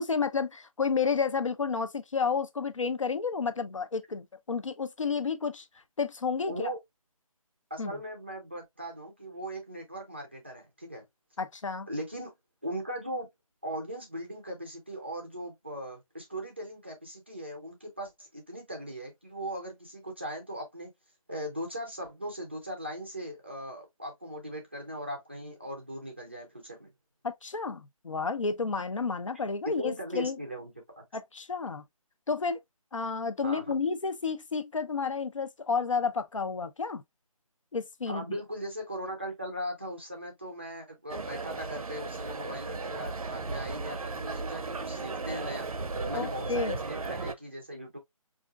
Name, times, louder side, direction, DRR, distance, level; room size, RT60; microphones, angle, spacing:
voice 1, 0.0-5.7 6.0-6.5 7.8-8.0 11.4-11.9 27.2-30.4 31.1-31.8 32.3-32.6 32.9-37.0 37.7-38.2 46.1-46.8, left 5 dB, 60° left, 0.6 m, -31 dB
voice 2, 6.5-6.8 7.7-11.0 11.9-12.3 12.6-13.3 13.6-20.9 21.3-26.9 29.8-31.0 33.4-33.6 38.1-45.7 46.0-48.0, equal, 20° right, 0.5 m, -39 dB
sound 1, 41.1-47.3, right 3 dB, 75° right, 0.6 m, -36 dB
4.9 x 2.5 x 2.3 m
figure-of-eight pair, 175°, 19 cm